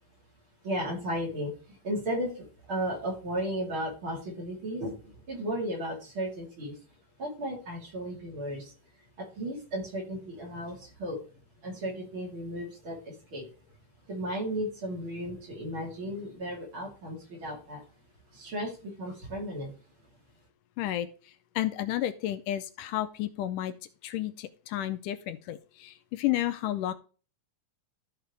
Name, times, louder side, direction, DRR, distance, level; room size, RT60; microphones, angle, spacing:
voice 1, 0.6-6.8 7.2-8.7 9.2-11.2 11.6-13.5 14.1-17.8 18.3-19.7, equal, 40° right, -2 dB, 3.9 m, -35 dB
voice 2, 20.8-21.1 21.6-23.7 24.0-26.9, left 13 dB, 80° left, 11 dB, 2.1 m, -31 dB
14.0 x 4.8 x 3.4 m, 0.36 s
omnidirectional pair, 3.9 m